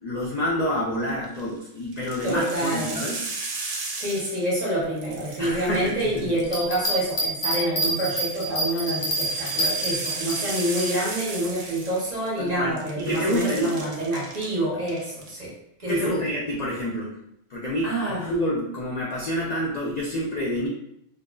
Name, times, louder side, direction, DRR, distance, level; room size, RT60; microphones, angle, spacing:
voice 1, 0.0-3.2 5.4-6.3 12.4-13.8 15.9-17.2 17.5-20.7, equal, 70° left, -4 dB, 0.4 m, -28 dB
sound 1, 1.1-1.4 1.9-4.7 5.0-6.8 8.0-12.5 12.8-14.5 14.8-15.3, right 3 dB, 80° right, 0.9 m, -35 dB
voice 2, 2.2-3.0 3.9-15.5 15.8-16.2 17.8-18.3, right 1 dB, 35° right, -6 dB, 1.0 m, -27 dB
Bell, 6.4-10.9 11.4-11.5, right 1 dB, 55° left, 0.7 m, -27 dB
2.6 x 2.2 x 2.2 m, 0.78 s
omnidirectional pair, 1.2 m